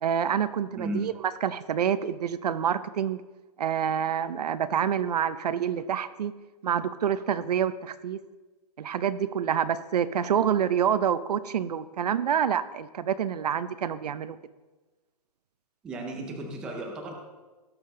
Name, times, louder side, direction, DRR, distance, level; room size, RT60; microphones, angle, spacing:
voice 1, 0.0-3.2 3.6-6.3 6.6-8.2 8.8-14.4, right 8 dB, 75° right, 13 dB, 0.7 m, -27 dB
voice 2, 0.7-1.1 15.8-17.1, right 1 dB, 5° right, 1 dB, 0.5 m, -34 dB
18.0 x 6.7 x 3.8 m, 1.2 s
hypercardioid pair, 175°, 21 cm